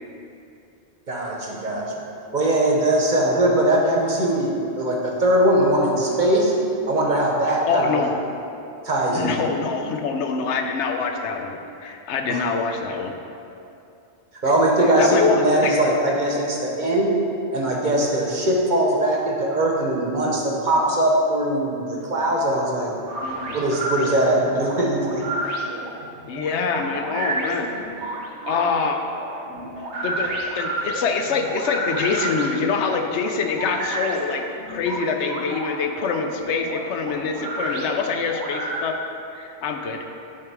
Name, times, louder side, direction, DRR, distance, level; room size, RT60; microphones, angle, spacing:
voice 1, 1.1-1.8 2.3-6.5 6.9-8.1 8.8-9.4 12.3-12.4 14.4-17.1 17.5-22.9 23.5-25.2, right 1 dB, 45° right, -2 dB, 0.9 m, -21 dB
voice 2, 7.7-8.1 9.1-13.1 15.0-15.9 23.2-23.6 26.3-27.7 28.0-28.2 28.5-29.0 30.0-39.0 39.3-40.0, left 5 dB, 80° left, 4 dB, 0.9 m, -25 dB
sound 1, 23.0-38.8, right 1 dB, 75° right, 1.1 m, -31 dB
8.4 x 3.4 x 4.7 m, 2.7 s
omnidirectional pair, 1.2 m